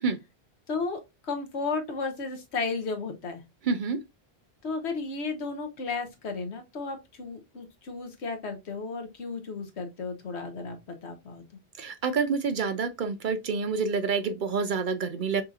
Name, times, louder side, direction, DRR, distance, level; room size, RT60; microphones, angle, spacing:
voice 1, 0.7-3.4 4.6-11.4, left 4 dB, 90° left, 1.3 m, -34 dB
voice 2, 3.6-4.0 11.8-15.4, right 5 dB, 60° right, 0.6 m, -28 dB
5.4 x 2.8 x 2.4 m
omnidirectional pair, 1.1 m